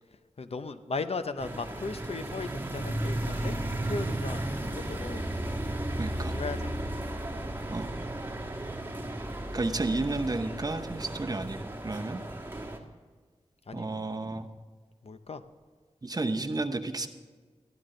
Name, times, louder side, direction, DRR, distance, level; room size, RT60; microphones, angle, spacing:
voice 1, 0.4-3.5 3.9-5.2 6.2-6.8 7.4-7.5 13.7-14.0 15.0-15.4, left 4 dB, 60° left, 10 dB, 0.6 m, -37 dB
sound 1, 1.4-12.8, right 1 dB, 15° right, 1.5 m, -34 dB
voice 2, 6.0-6.4 7.7-7.9 9.5-12.2 13.7-14.5 16.0-17.1, right 2 dB, 35° right, 6 dB, 0.8 m, -32 dB
13.0 x 12.0 x 3.8 m, 1.5 s
wide cardioid pair, 75°, 12 cm